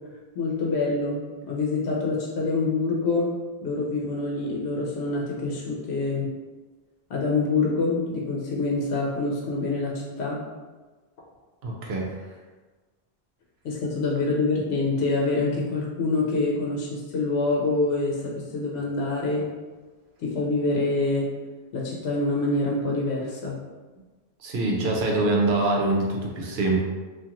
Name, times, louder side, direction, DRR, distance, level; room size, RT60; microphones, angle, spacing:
voice 1, 0.4-1.2 1.5-3.3 3.6-6.3 7.1-10.4 13.6-19.4 20.2-21.3 21.7-23.5, left 3 dB, 85° left, -3 dB, 0.8 m, -26 dB
voice 2, 11.6-12.1 24.4-26.8, right 2 dB, 75° right, -1 dB, 0.9 m, -24 dB
2.8 x 2.5 x 2.4 m, 1.3 s
omnidirectional pair, 1.1 m